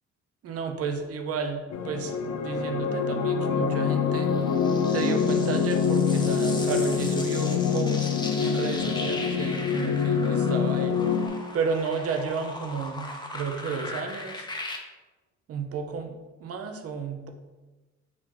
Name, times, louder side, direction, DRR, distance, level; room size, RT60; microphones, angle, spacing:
voice 1, 0.4-2.2 2.4-4.3 4.9-8.1 8.4-14.5 15.5-17.3, right 5 dB, 50° right, 5 dB, 0.6 m, -32 dB
sound 1, 1.7-11.3, left 6 dB, 65° left, 0.5 m, -25 dB
sound 2, 4.1-14.8, left 2 dB, 15° left, 0.7 m, -39 dB
4.9 x 2.9 x 3.7 m, 1.2 s
cardioid pair, 90°, 30 cm